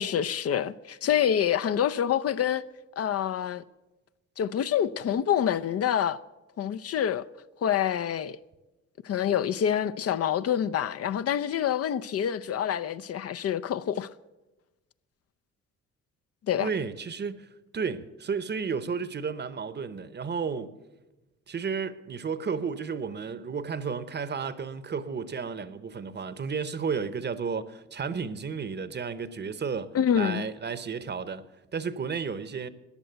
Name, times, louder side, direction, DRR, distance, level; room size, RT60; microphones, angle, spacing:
voice 1, 0.0-2.6 3.0-3.6 4.4-6.2 6.6-7.3 7.6-8.4 9.0-14.1 16.5-16.7 29.9-30.4, left 9 dB, 50° left, 0.5 m, -26 dB
voice 2, 16.6-17.5 17.7-20.8 21.5-31.4 31.7-32.7, right 5 dB, 35° right, 0.8 m, -32 dB
14.5 x 10.0 x 7.9 m
cardioid pair, 90°, 30 cm